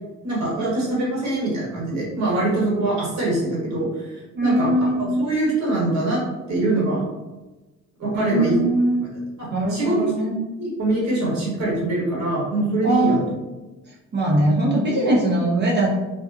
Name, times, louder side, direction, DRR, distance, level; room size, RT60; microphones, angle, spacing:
voice 1, 0.2-4.1 4.4-6.2 6.5-7.0 8.0-8.5 9.4-9.9 10.6-13.2, right 2 dB, 65° right, -5 dB, 1.3 m, -23 dB
voice 2, 4.3-5.3 8.1-9.1 9.5-10.3 12.8-13.2 14.1-15.9, right 1 dB, 35° right, -4 dB, 0.7 m, -21 dB
2.5 x 2.4 x 2.4 m, 1.1 s
cardioid pair, 90°, 30 cm